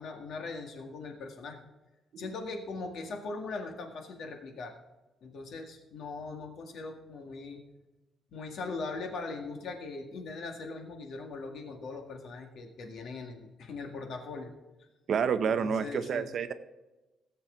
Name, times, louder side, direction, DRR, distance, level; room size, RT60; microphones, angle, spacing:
voice 1, 0.0-1.6 2.2-4.7 5.2-7.6 8.3-14.5 15.4-16.3, left 3 dB, 60° left, 3 dB, 1.9 m, -40 dB
voice 2, 15.1-16.5, right 6 dB, 45° right, 11 dB, 0.7 m, -29 dB
17.0 x 7.6 x 3.9 m, 1.1 s
cardioid pair, 170°, 0 cm